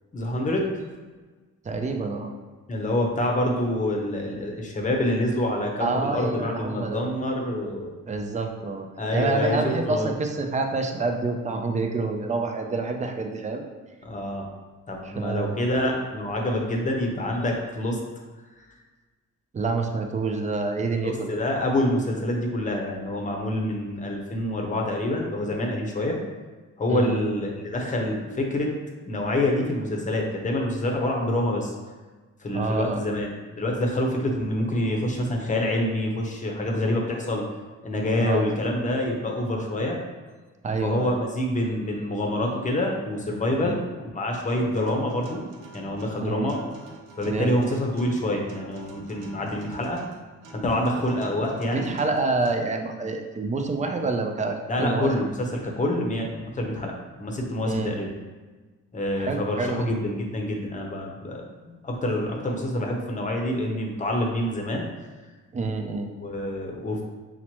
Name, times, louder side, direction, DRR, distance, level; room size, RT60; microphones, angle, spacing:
voice 1, 0.1-0.7 2.7-7.9 9.0-10.1 14.0-14.5 14.9-18.0 18.6-18.7 20.9-26.2 26.8-28.7 29.1-31.7 32.4-37.5 37.8-40.0 40.8-45.5 45.7-46.7 47.2-50.0 50.5-51.9 54.7-56.9 57.2-58.1 58.9-64.9 66.2-67.0, left 1 dB, 25° left, 1 dB, 0.8 m, -26 dB
voice 2, 1.6-2.3 5.8-7.1 8.1-13.6 15.2-15.5 19.5-21.4 26.9-27.2 32.5-33.0 38.2-38.5 40.6-41.2 43.6-43.7 46.2-46.5 47.3-47.5 51.6-55.1 57.7-58.1 59.2-59.9 65.5-66.1, right 3 dB, 25° right, 4 dB, 0.5 m, -27 dB
Acoustic guitar, 44.5-52.5, right 1 dB, 90° right, 0.8 m, -46 dB
5.9 x 2.1 x 2.9 m, 1.3 s
cardioid pair, 90°, 30 cm